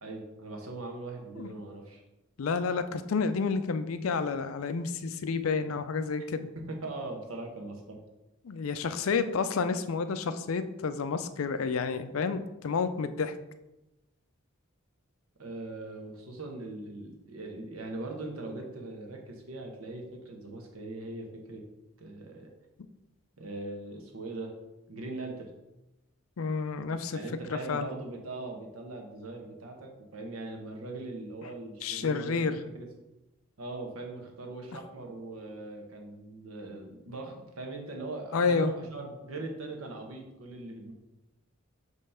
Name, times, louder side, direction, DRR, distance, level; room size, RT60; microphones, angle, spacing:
voice 1, 0.0-2.0 6.6-8.0 15.4-21.6 22.0-22.5 23.4-24.5 24.9-25.5 27.1-32.9 33.6-40.9, right 2 dB, 75° right, 2 dB, 1.1 m, -40 dB
voice 2, 2.4-6.5 8.4-13.3 26.4-27.2 27.5-27.9 31.8-32.6 38.3-38.7, left 5 dB, 70° left, 11 dB, 0.4 m, -30 dB
5.5 x 3.1 x 5.6 m, 0.97 s
head